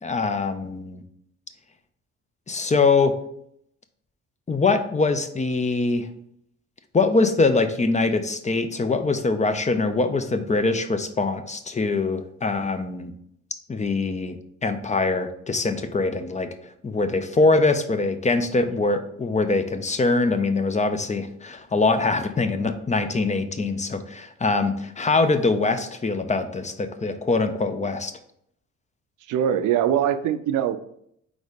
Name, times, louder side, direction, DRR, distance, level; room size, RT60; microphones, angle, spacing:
voice 1, 0.0-1.0 2.5-3.1 4.5-6.1 6.9-13.1 13.7-16.5 16.8-28.1, left 3 dB, 25° left, 8 dB, 0.7 m, -23 dB
voice 2, 29.3-30.8, right 9 dB, 85° right, 11 dB, 0.6 m, -22 dB
4.7 x 4.0 x 5.1 m, 0.71 s
cardioid pair, 90°, 30 cm